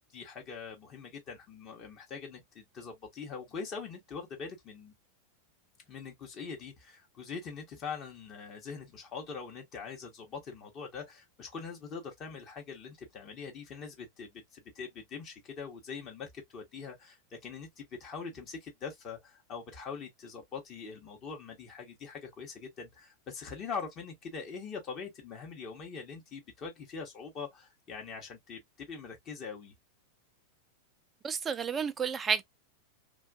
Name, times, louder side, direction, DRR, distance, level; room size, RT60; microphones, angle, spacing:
voice 1, 0.0-4.9 5.9-29.7, left 5 dB, 30° left, 0.9 m, -43 dB
voice 2, 31.2-32.4, right 6 dB, 20° right, 0.3 m, -31 dB
2.5 x 2.3 x 2.2 m
figure-of-eight pair, 90°, 0 cm